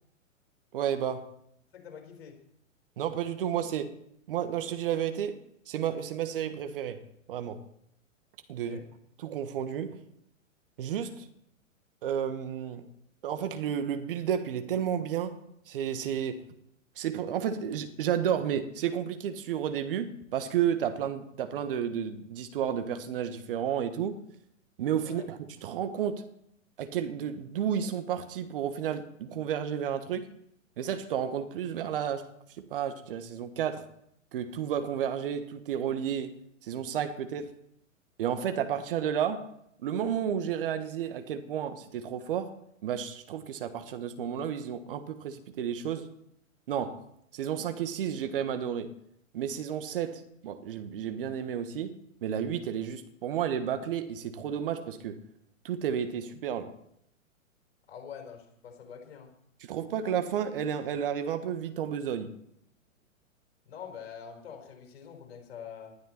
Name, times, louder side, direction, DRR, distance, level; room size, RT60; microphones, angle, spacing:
voice 1, 0.7-1.3 3.0-3.9 4.3-7.6 8.5-8.8 9.2-10.0 10.8-11.3 12.0-12.9 13.2-15.4 15.7-16.5 17.0-24.2 24.8-26.3 26.8-30.3 30.8-32.3 32.6-33.9 34.3-36.3 36.6-37.5 38.2-39.5 39.8-42.5 42.8-46.1 46.7-47.0 47.3-49.0 49.3-51.9 52.2-55.2 55.6-56.7 59.7-62.3, right 9 dB, 40° right, 1.4 m, -32 dB
voice 2, 1.7-2.4 8.5-8.9 25.0-25.3 57.9-59.3 63.7-66.0, left 7 dB, 45° left, 4.5 m, -45 dB
20.0 x 11.5 x 4.4 m
figure-of-eight pair, 110°, 40 cm